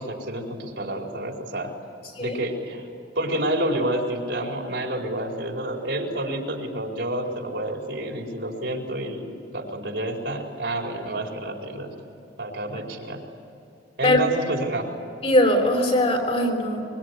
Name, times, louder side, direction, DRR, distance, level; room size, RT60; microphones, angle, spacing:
voice 1, 0.0-1.7 2.2-2.9 3.1-11.9 12.4-13.2 14.0-14.9, right 1 dB, 70° right, 1 dB, 4.7 m, -29 dB
voice 2, 15.2-16.8, left 1 dB, 35° left, 3 dB, 5.0 m, -20 dB
24.5 x 24.5 x 9.9 m, 2.7 s
head